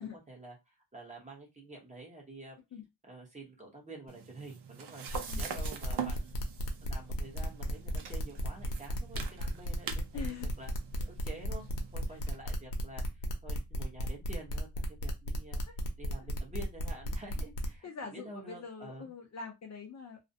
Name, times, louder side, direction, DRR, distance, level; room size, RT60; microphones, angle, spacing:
voice 1, 0.0-2.6 3.1-5.0 5.3-6.4 6.8-10.7 11.2-11.6 11.9-14.7 15.0-15.6 16.0-19.1, right 2 dB, 15° right, -1 dB, 0.7 m, -49 dB
sound 1, 4.1-12.4, right 7 dB, 75° right, 0.6 m, -44 dB
sound 2, 5.1-17.8, equal, 85° left, 0.7 m, -35 dB
voice 2, 10.1-10.5 12.1-12.2 15.7-15.8 16.2-16.3 17.8-20.2, left 5 dB, 40° left, 3 dB, 0.5 m, -43 dB
2.4 x 2.1 x 2.5 m, 0.21 s
wide cardioid pair, 170°, 42 cm